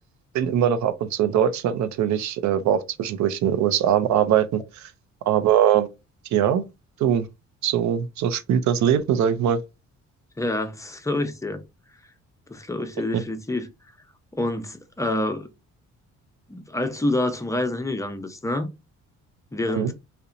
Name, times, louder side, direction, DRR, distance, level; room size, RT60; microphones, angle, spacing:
voice 1, 0.3-4.9 5.3-5.9 6.3-6.6 7.0-7.3 7.6-9.6 13.1-13.2 19.7-19.9, right 9 dB, 70° right, 0.5 m, -21 dB
voice 2, 10.4-11.6 12.5-13.7 14.3-15.5 16.5-18.7 19.5-19.9, left 1 dB, 10° left, 0.5 m, -27 dB
2.7 x 2.1 x 2.4 m
cardioid pair, 90°, 30 cm